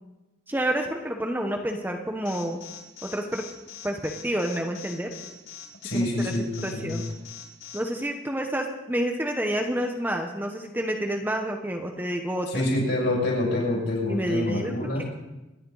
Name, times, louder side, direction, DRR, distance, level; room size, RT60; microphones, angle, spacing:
voice 1, 0.5-2.6 3.0-3.4 3.8-5.1 5.9-6.3 6.6-7.0 7.7-12.6 14.1-14.7, right 1 dB, 10° right, 3 dB, 1.1 m, -29 dB
Alarm, 2.2-7.8, left 8 dB, 85° left, 4.4 m, -42 dB
voice 2, 5.8-7.0 12.5-15.0, left 1 dB, 60° left, -3 dB, 7.0 m, -26 dB
26.5 x 11.0 x 4.0 m, 1.0 s
head